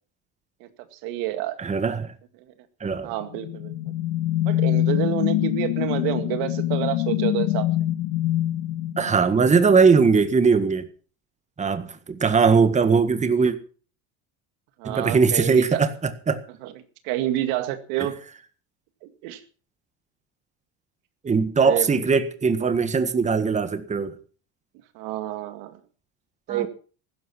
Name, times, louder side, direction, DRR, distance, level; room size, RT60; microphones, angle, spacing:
voice 1, 0.6-1.6 3.0-3.7 4.4-7.7 14.8-15.8 16.6-16.7 17.0-18.2 19.2-19.4 21.6-21.9 24.9-25.8 26.5-26.7, right 13 dB, 80° right, 2.1 m, -28 dB
voice 2, 1.6-2.1 2.8-3.1 9.0-10.9 11.6-13.6 14.8-16.4 18.0-18.1 21.2-24.1 26.5-26.7, right 5 dB, 20° right, 1.6 m, -20 dB
sound 1, 3.2-9.7, left 14 dB, 80° left, 1.4 m, -25 dB
15.5 x 12.0 x 5.9 m
cardioid pair, 120°, 34 cm